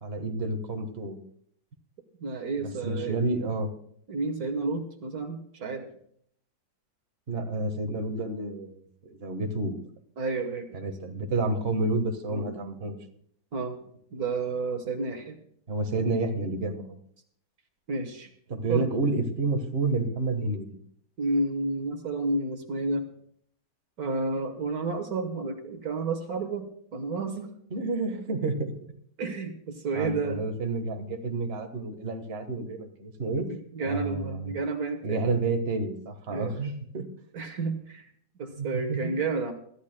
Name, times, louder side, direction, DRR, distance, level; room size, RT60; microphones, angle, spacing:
voice 1, 0.0-1.2 2.6-3.7 7.3-9.8 10.7-13.0 15.7-16.9 18.5-20.7 27.7-28.7 29.9-33.5 33.8-34.5 35.0-37.1 38.6-39.1, right 3 dB, 40° right, 5 dB, 1.6 m, -30 dB
voice 2, 2.2-3.2 4.1-5.9 10.2-10.8 12.3-12.5 13.5-13.8 14.1-15.4 17.9-18.3 18.7-18.9 21.2-23.1 24.0-27.5 29.2-30.4 33.4-35.2 36.3-36.7 37.3-38.1 38.4-39.5, right 3 dB, 60° right, 6 dB, 1.7 m, -31 dB
23.0 x 13.5 x 2.2 m, 0.64 s
omnidirectional pair, 1.8 m